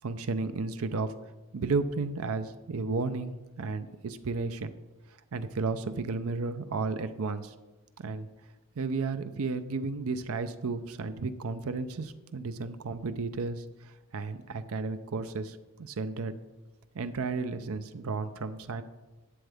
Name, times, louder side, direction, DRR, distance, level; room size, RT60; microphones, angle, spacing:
voice 1, 0.0-1.1 1.5-4.8 5.3-7.5 8.0-8.3 8.8-16.4 16.9-18.8, right 4 dB, 75° right, 11 dB, 0.5 m, -33 dB
11.5 x 8.0 x 3.5 m, 1.1 s
head